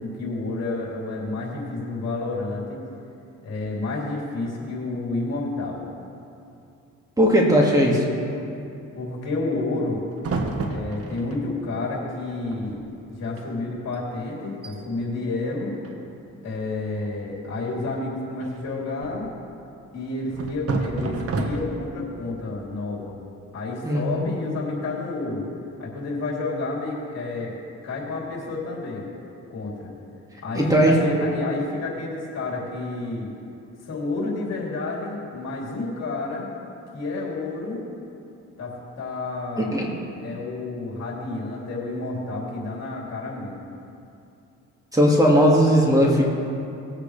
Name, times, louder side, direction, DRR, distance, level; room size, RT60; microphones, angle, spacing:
voice 1, 0.0-2.8 3.4-5.8 9.0-10.0 10.7-12.8 13.2-15.7 16.4-19.3 19.9-23.2 23.5-25.5 25.8-27.5 27.8-29.1 29.5-29.9 30.4-33.3 33.8-36.5 36.9-37.8 38.6-39.8 40.2-43.6, left 2 dB, 60° left, -4 dB, 3.2 m, -30 dB
voice 2, 7.2-8.1 23.8-24.3 30.5-30.9 39.6-40.0 44.9-46.2, equal, 10° right, -2 dB, 2.0 m, -18 dB
sound 1, 10.2-11.4 12.2-12.3 12.5-12.9 13.2-13.4 13.9-14.0 14.4-14.8 15.8-16.4 18.4-19.4 20.3-22.0, right 3 dB, 50° right, 1.2 m, -30 dB
19.0 x 8.4 x 3.3 m, 2.7 s
cardioid pair, 90°, 30 cm